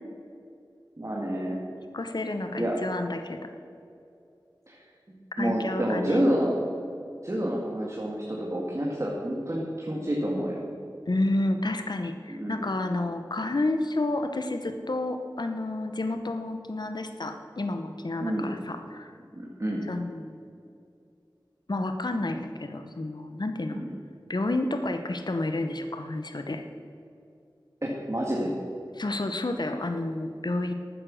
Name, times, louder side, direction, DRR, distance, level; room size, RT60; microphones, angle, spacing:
voice 1, 1.0-1.6 2.6-2.8 4.7-4.8 5.1-6.6 7.2-10.6 12.3-12.6 18.2-18.5 19.3-19.9 23.7-23.9 27.8-28.5, equal, 40° right, -3 dB, 1.9 m, -29 dB
voice 2, 1.9-3.5 5.4-6.2 11.1-19.1 19.8-20.4 21.7-23.8 24.3-26.6 28.9-30.7, left 2 dB, 60° left, 7 dB, 0.9 m, -30 dB
13.0 x 9.3 x 6.3 m, 2.5 s
wide cardioid pair, 45°, 8 cm